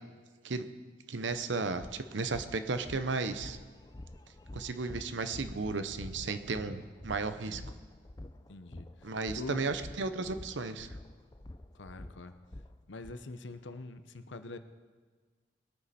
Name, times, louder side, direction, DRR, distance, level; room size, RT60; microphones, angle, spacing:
voice 1, 1.1-3.6 4.5-7.6 9.0-10.9, right 3 dB, 80° right, 10 dB, 0.8 m, -34 dB
sound 1, 1.7-13.1, left 1 dB, 20° left, 0.5 m, -48 dB
voice 2, 8.5-9.7 11.7-12.3 12.9-14.6, left 2 dB, 80° left, 10 dB, 0.8 m, -44 dB
21.0 x 9.5 x 4.2 m, 1.4 s
head